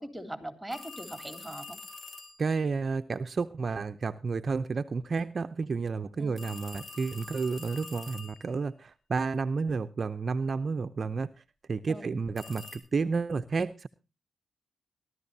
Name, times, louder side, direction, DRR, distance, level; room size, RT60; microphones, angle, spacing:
voice 1, 0.0-1.8 6.2-6.4 11.9-12.2, right 1 dB, 5° right, 8 dB, 3.4 m, -41 dB
sound 1, 0.7-2.4 6.4-8.6 12.4-12.8, left 3 dB, 35° left, 4.4 m, -45 dB
voice 2, 2.4-11.3 11.7-13.9, right 4 dB, 45° right, 10 dB, 0.6 m, -31 dB
20.5 x 12.5 x 2.7 m, 0.30 s
cardioid pair, 70°, 0 cm